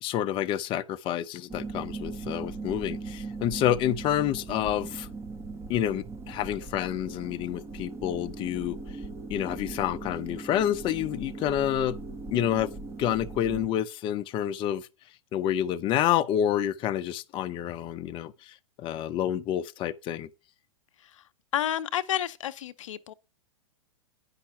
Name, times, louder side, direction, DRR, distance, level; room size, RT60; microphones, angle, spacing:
voice 1, 0.0-5.1 5.7-8.8 9.3-12.0 12.3-12.7 13.0-14.9 15.3-20.3, left 11 dB, 30° left, 0.7 m, -28 dB
sound 1, 1.5-13.7, right 3 dB, 15° right, 0.8 m, -39 dB
voice 2, 21.5-23.1, left 11 dB, 70° left, 0.6 m, -30 dB
9.9 x 5.8 x 5.6 m
hypercardioid pair, 115°, 17 cm